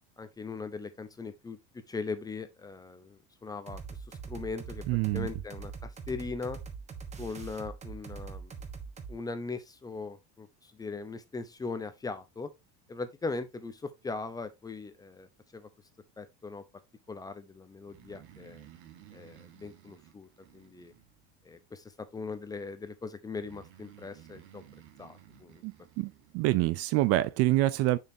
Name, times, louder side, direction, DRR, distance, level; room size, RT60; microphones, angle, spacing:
voice 1, 0.2-1.6 1.9-3.8 4.1-4.8 5.1-6.6 7.2-8.5 9.1-12.5 12.9-15.3 15.5-15.7 16.2-16.6 17.1-18.6 19.1-20.3 20.5-20.9 21.4-24.6 25.0-25.6, left 4 dB, 10° left, 0.7 m, -39 dB
sound 1, 3.7-9.2, right 5 dB, 20° right, 1.2 m, -42 dB
voice 2, 4.9-5.3 25.6-28.0, right 17 dB, 50° right, 0.5 m, -26 dB
Breathing, 17.8-21.5 23.3-26.4, right 11 dB, 90° right, 2.3 m, -55 dB
6.9 x 6.5 x 2.8 m
cardioid pair, 160°, 33 cm